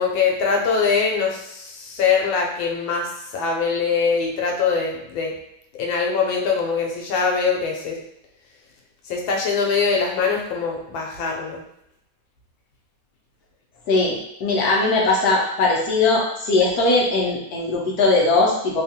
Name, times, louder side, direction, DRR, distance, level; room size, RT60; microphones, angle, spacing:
voice 1, 0.0-5.3 5.7-8.0 9.1-11.6, left 5 dB, 85° left, 0 dB, 1.4 m, -22 dB
voice 2, 13.9-18.8, left 3 dB, 65° left, -3 dB, 1.0 m, -20 dB
3.4 x 2.3 x 2.7 m, 0.77 s
omnidirectional pair, 2.1 m